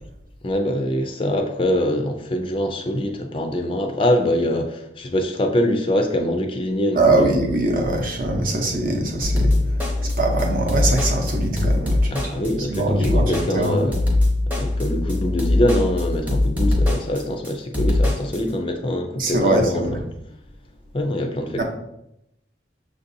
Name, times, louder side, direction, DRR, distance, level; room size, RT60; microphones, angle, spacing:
voice 1, 0.4-7.4 12.1-13.9 14.6-20.0 20.9-21.6, left 1 dB, 30° left, 5 dB, 0.4 m, -24 dB
voice 2, 6.9-12.3 12.7-13.9 19.2-19.9 21.6-21.7, right 2 dB, 50° right, 1 dB, 0.7 m, -22 dB
sound 1, 9.2-18.4, left 2 dB, 10° right, 0.8 m, -21 dB
6.3 x 2.6 x 2.6 m, 0.83 s
head